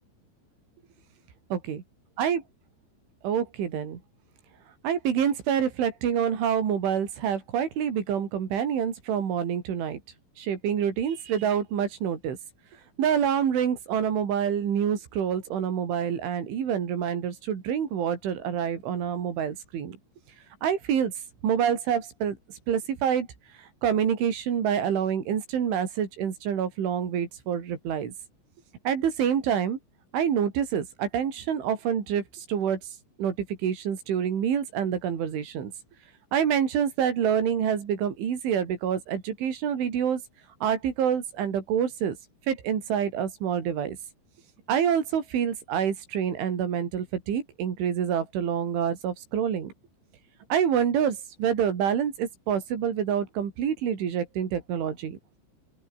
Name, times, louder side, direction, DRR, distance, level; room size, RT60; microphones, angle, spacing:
voice 1, 3.2-4.0 4.8-10.0 10.4-12.4 13.0-20.0 20.6-21.1 21.4-22.4 22.7-23.3 23.6-28.1 28.9-29.8 30.1-32.8 33.2-35.7 36.3-40.2 40.6-42.2 42.5-44.0 44.7-49.7 50.5-55.2, right 8 dB, 85° right, 6.2 m, -27 dB
open air
omnidirectional pair, 5.4 m